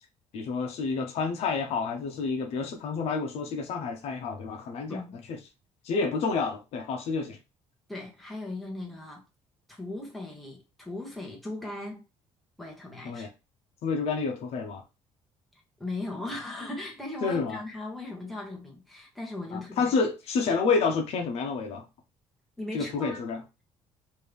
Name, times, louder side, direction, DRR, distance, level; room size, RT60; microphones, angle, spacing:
voice 1, 0.3-5.0 5.3-5.4 5.8-7.4 13.0-13.3 13.8-14.8 17.2-17.6 19.5-21.8 22.7-23.6, left 4 dB, 65° left, 0.8 m, -29 dB
voice 2, 7.9-9.3 9.7-12.0 12.6-13.3 15.8-19.9 22.6-23.2, left 2 dB, ahead, 1.0 m, -38 dB
3.3 x 2.7 x 3.3 m
cardioid pair, 160°, 11 cm